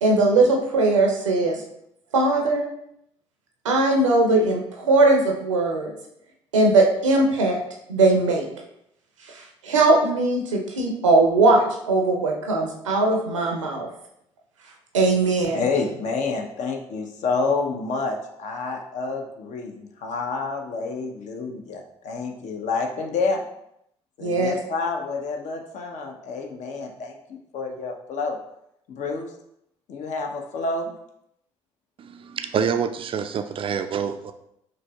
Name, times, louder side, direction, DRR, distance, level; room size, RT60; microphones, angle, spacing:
voice 1, 0.0-1.6 2.1-2.7 3.6-5.9 6.5-7.6 7.9-8.5 9.6-13.9 14.9-15.6 24.2-24.5, right 2 dB, 80° right, 1 dB, 0.6 m, -19 dB
voice 2, 15.5-23.4 24.2-28.4 28.9-29.3 29.9-30.9, left 4 dB, 50° left, 3 dB, 0.7 m, -28 dB
voice 3, 32.0-34.3, right 7 dB, 35° right, 8 dB, 0.3 m, -27 dB
5.0 x 3.1 x 2.3 m, 0.77 s
figure-of-eight pair, 50°, 16 cm